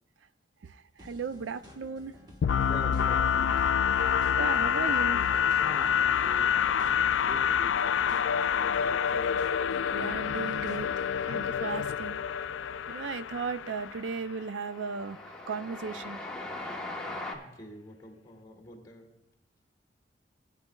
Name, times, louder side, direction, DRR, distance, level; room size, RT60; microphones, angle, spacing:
sound 1, 1.0-11.3, equal, 20° right, 1.3 m, -53 dB
voice 1, 1.0-2.1 4.4-5.2 9.9-10.9 11.3-12.2 12.9-15.2 15.5-16.2, right 5 dB, 90° right, 13 dB, 0.4 m, -35 dB
sound 2, 2.4-14.2, left 8 dB, 90° left, 0.3 m, -27 dB
voice 2, 2.7-3.7 5.6-7.8 8.1-9.4 17.3-19.1, left 1 dB, 20° left, 0 dB, 2.1 m, -46 dB
Train, 12.6-17.4, left 2 dB, 5° left, 1.1 m, -41 dB
18.5 x 8.4 x 2.3 m, 0.97 s
head